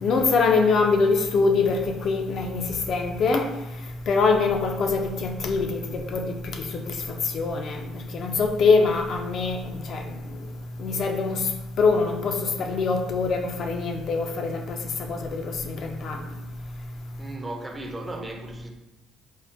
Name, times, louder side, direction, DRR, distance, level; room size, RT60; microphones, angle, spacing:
voice 1, 0.0-3.5 4.1-6.9 7.3-7.8 8.1-10.0 10.8-11.4 11.8-14.8 15.1-16.2, left 4 dB, 55° left, 0.3 m, -24 dB
voice 2, 17.2-18.7, right 2 dB, 20° right, 0.4 m, -36 dB
3.5 x 2.1 x 2.6 m
cardioid pair, 100°, 0 cm